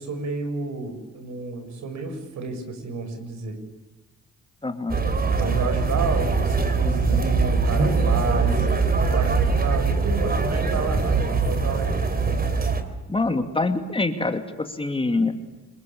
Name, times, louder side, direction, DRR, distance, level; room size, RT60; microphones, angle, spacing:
voice 1, 0.0-3.5 5.4-8.7 9.1-11.9, right 4 dB, 70° right, 7 dB, 7.1 m, -31 dB
voice 2, 4.6-5.0 13.1-15.3, left 3 dB, 15° left, 7 dB, 2.6 m, -25 dB
sound 1, 4.9-12.8, right 4 dB, 30° right, 3.8 m, -22 dB
26.5 x 22.0 x 8.6 m, 1.1 s
cardioid pair, 90°, 30 cm